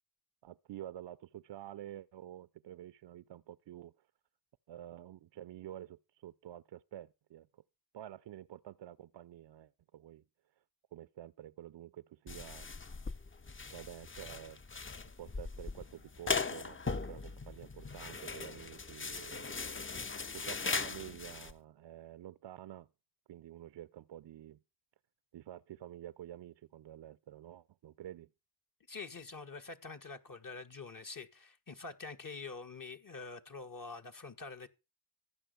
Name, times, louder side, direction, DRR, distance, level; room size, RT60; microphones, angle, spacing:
voice 1, 0.4-3.9 4.7-7.5 7.9-10.2 10.9-12.7 13.7-14.6 15.2-19.8 20.3-22.9 23.3-24.6 25.3-28.3, right 12 dB, 75° right, 0.6 m, -49 dB
sound 1, 12.3-21.5, left 4 dB, 30° left, 0.8 m, -39 dB
voice 2, 28.9-34.7, left 4 dB, 45° left, 1.7 m, -46 dB
15.0 x 5.3 x 8.3 m
cardioid pair, 40°, 44 cm